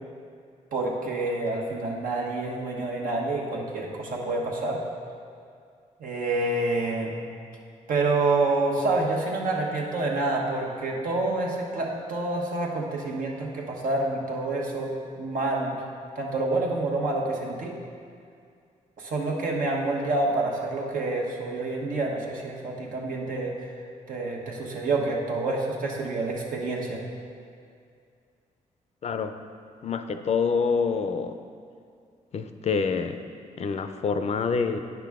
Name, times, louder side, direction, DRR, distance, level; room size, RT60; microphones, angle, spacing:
voice 1, 0.7-4.8 6.0-7.2 7.9-14.9 15.2-15.7 16.1-17.7 19.0-23.5 24.1-27.0, right 2 dB, 75° right, -1 dB, 1.2 m, -28 dB
voice 2, 29.0-29.3 29.8-31.4 32.3-33.2 33.6-34.8, left 5 dB, 50° left, 8 dB, 0.5 m, -26 dB
9.3 x 5.9 x 3.6 m, 2.3 s
cardioid pair, 90°, 14 cm